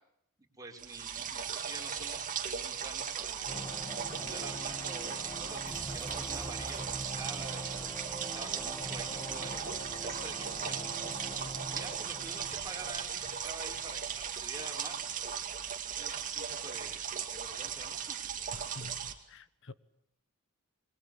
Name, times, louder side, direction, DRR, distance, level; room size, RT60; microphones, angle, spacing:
voice 1, 0.6-3.7 4.2-7.7 8.2-9.7 10.0-11.2 11.7-15.0 15.9-17.0 17.3-18.2, right 3 dB, 15° right, 5.3 m, -47 dB
sound 1, 0.8-19.1, right 7 dB, 35° right, 2.3 m, -37 dB
sound 2, 3.5-14.0, equal, 20° left, 1.7 m, -44 dB
voice 2, 18.5-19.7, left 2 dB, 60° left, 1.2 m, -48 dB
27.0 x 22.5 x 8.6 m
head